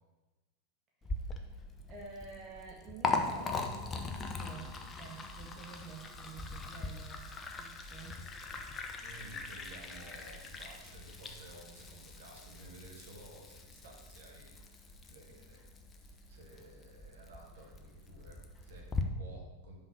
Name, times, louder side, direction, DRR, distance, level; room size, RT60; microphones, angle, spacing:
Liquid, 1.0-19.0, left 3 dB, 20° left, 0.8 m, -41 dB
voice 1, 1.1-1.5 1.9-4.7 5.0-8.2, right 5 dB, 35° right, -1 dB, 1.1 m, -50 dB
voice 2, 9.0-19.8, right 2 dB, 60° right, -1 dB, 1.8 m, -54 dB
5.5 x 5.4 x 6.6 m, 1.2 s
figure-of-eight pair, 90°, 0 cm